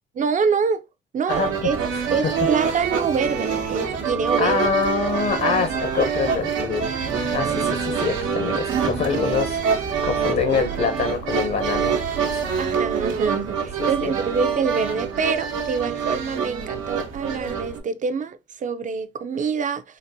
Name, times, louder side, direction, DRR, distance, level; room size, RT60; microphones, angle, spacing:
voice 1, 0.1-0.8 1.1-1.8 2.1-4.6 5.6-5.7 12.6-20.0, right 5 dB, 40° right, 0.5 m, -25 dB
sound 1, 1.3-17.8, right 6 dB, 90° right, 1.0 m, -26 dB
voice 2, 4.4-6.9 7.3-12.0 12.3-12.4 13.8-14.1, left 5 dB, 55° left, 0.7 m, -25 dB
4.0 x 2.5 x 2.7 m
cardioid pair, 90°, 20 cm